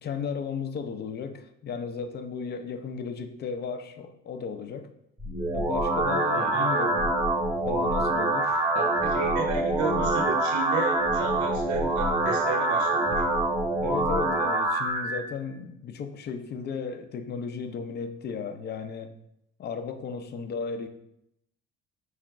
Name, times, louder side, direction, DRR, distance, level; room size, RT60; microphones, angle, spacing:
voice 1, 0.0-4.9 5.5-7.1 7.7-8.7 13.8-19.1 19.6-20.9, left 5 dB, 30° left, 9 dB, 0.4 m, -35 dB
sound 1, 5.2-15.2, right 1 dB, 5° right, 0.8 m, -25 dB
voice 2, 6.3-6.7 8.7-13.3, right 4 dB, 55° right, 3 dB, 0.7 m, -33 dB
4.8 x 2.1 x 3.5 m, 0.80 s
hypercardioid pair, 70°, 35 cm